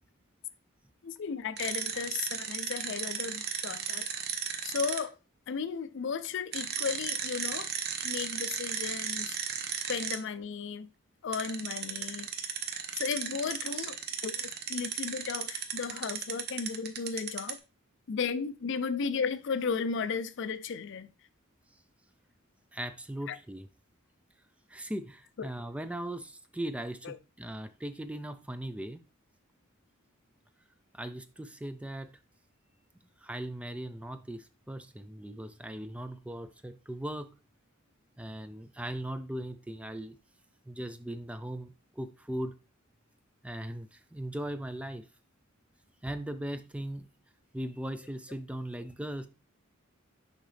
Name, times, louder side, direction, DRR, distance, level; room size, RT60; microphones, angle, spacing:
voice 1, 1.0-4.1 4.6-5.1 5.5-7.7 8.0-9.6 9.9-10.9 11.2-12.3 12.9-14.0 14.2-17.6 18.1-21.1 23.3-23.4 25.4-25.5 27.0-27.2, left 5 dB, 60° left, 0.4 m, -35 dB
sound 1, 1.6-5.0 6.5-10.2 11.3-17.6, right 7 dB, 50° right, 0.8 m, -35 dB
voice 2, 22.7-23.7 24.7-29.0 30.9-32.1 33.2-37.3 38.2-40.2 40.7-42.5 43.4-45.0 46.0-47.1 47.5-49.3, right 1 dB, 5° right, 0.3 m, -39 dB
6.4 x 4.8 x 3.3 m
head